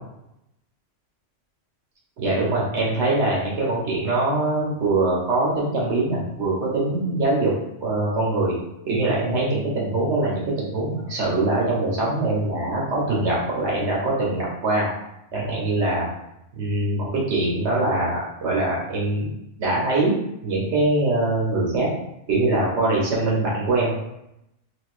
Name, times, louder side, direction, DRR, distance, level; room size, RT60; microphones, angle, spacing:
voice 1, 2.2-7.5 7.8-8.5 8.9-14.9 15.3-16.1 16.5-19.3 19.6-20.2 20.4-21.9 22.3-23.9, right 2 dB, 65° right, -5 dB, 1.1 m, -23 dB
3.9 x 2.4 x 2.4 m, 0.83 s
omnidirectional pair, 1.2 m